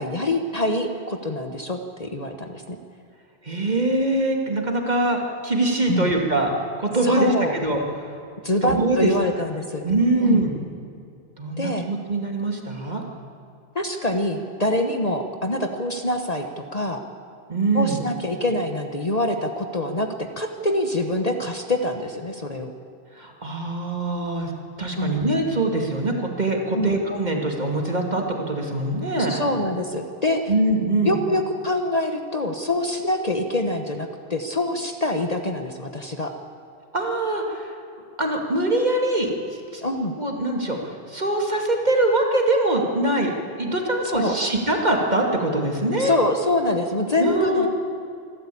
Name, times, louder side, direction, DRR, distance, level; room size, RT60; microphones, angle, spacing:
voice 1, 0.0-2.8 5.9-6.1 7.0-7.5 8.4-9.8 10.2-10.4 11.6-11.9 13.7-17.0 17.7-20.1 20.4-22.7 25.0-25.2 26.7-26.9 29.3-30.4 31.0-36.3 39.8-40.1 44.0-44.4 46.0-47.7, left 1 dB, 35° left, 5 dB, 1.2 m, -25 dB
voice 2, 3.4-6.5 6.8-7.8 8.6-9.1 9.8-10.5 11.4-13.0 17.5-18.0 23.1-24.5 24.8-29.4 30.5-31.2 36.9-37.7 38.2-39.3 39.7-39.8 40.2-46.1 47.2-47.7, right 2 dB, 40° right, 1 dB, 2.6 m, -23 dB
26.5 x 12.5 x 8.6 m, 2.5 s
omnidirectional pair, 1.1 m